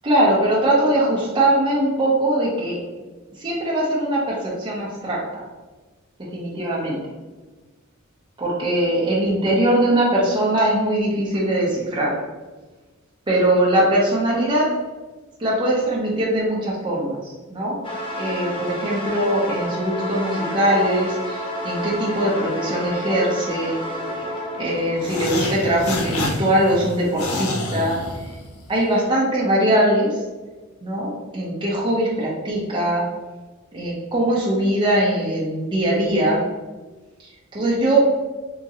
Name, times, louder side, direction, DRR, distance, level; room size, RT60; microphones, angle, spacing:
voice 1, 0.0-2.8 3.4-5.5 6.3-7.0 8.4-12.2 13.3-14.8 15.4-17.8 18.2-23.8 24.6-28.0 28.7-30.2 30.8-33.1 33.7-36.4 37.2-38.0, right 1 dB, 20° right, -6 dB, 0.7 m, -21 dB
sound 1, 17.8-25.3, left 1 dB, 25° left, 0.6 m, -29 dB
sound 2, 25.0-28.7, left 1 dB, 85° left, 0.6 m, -28 dB
3.7 x 2.9 x 2.8 m, 1.3 s
head